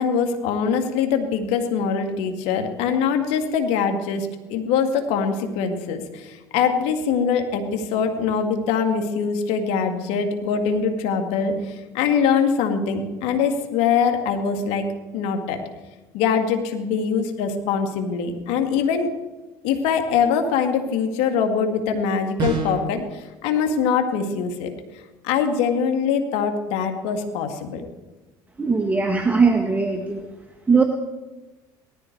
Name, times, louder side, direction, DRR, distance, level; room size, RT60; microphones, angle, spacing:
voice 1, 0.0-14.9 15.1-15.6 16.1-19.1 19.6-24.7 25.2-27.9, left 6 dB, 75° left, 6 dB, 2.3 m, -23 dB
sound 1, 22.4-22.9, right 5 dB, 45° right, 6.0 m, -25 dB
voice 2, 28.6-30.3 30.7-30.8, right 4 dB, 15° right, 4 dB, 1.6 m, -19 dB
18.5 x 13.5 x 4.7 m, 1.1 s
supercardioid pair, 90°, 11 cm